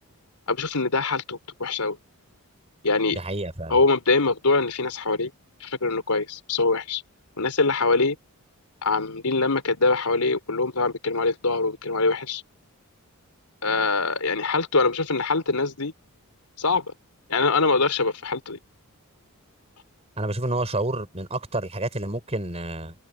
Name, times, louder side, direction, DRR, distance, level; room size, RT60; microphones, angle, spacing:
voice 1, 0.5-2.0 2.8-3.2 3.7-5.3 5.6-7.0 7.4-8.2 8.8-12.4 13.6-15.9 16.6-16.9 17.3-18.6, left 3 dB, 90° left, 3.8 m, -23 dB
voice 2, 3.1-3.8 20.2-22.9, right 1 dB, 30° right, 4.8 m, -29 dB
head